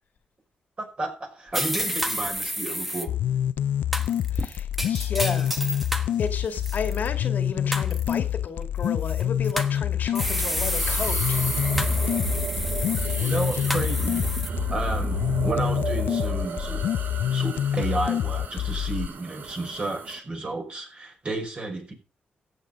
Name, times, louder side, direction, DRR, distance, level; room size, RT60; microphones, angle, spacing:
voice 1, 0.8-3.1 13.2-14.3 14.7-16.9 17.3-21.9, right 2 dB, 35° right, 5.5 m, -32 dB
sound 1, 1.5-3.1 3.9-6.1 6.5-7.1 7.7-8.2 9.1-9.7 10.1-14.5, equal, 5° right, 1.3 m, -30 dB
sound 2, 3.1-19.1, left 10 dB, 80° left, 0.5 m, -26 dB
voice 2, 4.3-5.6 6.2-11.4, left 5 dB, 60° left, 1.9 m, -32 dB
sound 3, 10.4-20.2, right 6 dB, 65° right, 1.8 m, -34 dB
14.5 x 8.4 x 5.2 m
cardioid pair, 105°, 3 cm